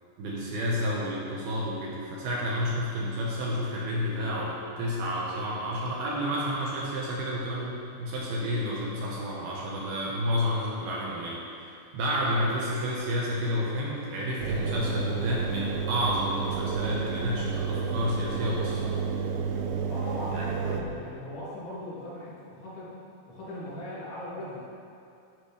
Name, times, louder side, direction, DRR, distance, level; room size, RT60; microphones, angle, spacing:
voice 1, 0.2-18.9 20.3-20.5, equal, 65° right, -4 dB, 2.7 m, -30 dB
Engine, 14.4-20.8, right 5 dB, 85° right, 2.3 m, -30 dB
voice 2, 19.9-22.9 23.3-24.6, left 1 dB, 70° left, -9 dB, 5.2 m, -39 dB
12.5 x 11.5 x 3.4 m, 2.6 s
omnidirectional pair, 5.4 m